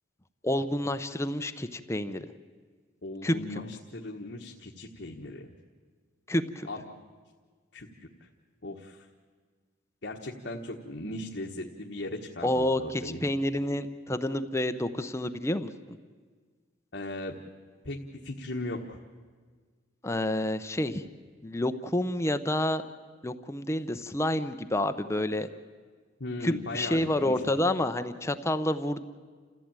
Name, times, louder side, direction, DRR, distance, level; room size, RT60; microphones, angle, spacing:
voice 1, 0.4-2.3 3.2-3.6 6.3-6.7 12.4-15.7 20.0-21.0 21.4-22.8 23.2-25.5 26.4-29.0, left 1 dB, 15° left, 9 dB, 0.7 m, -29 dB
voice 2, 3.0-5.5 6.6-6.9 7.7-7.9 8.2-8.3 8.6-9.1 10.0-13.2 16.9-17.4 17.8-19.0 26.2-27.4, left 1 dB, 60° left, 0 dB, 1.4 m, -38 dB
29.0 x 15.0 x 8.9 m, 1.5 s
head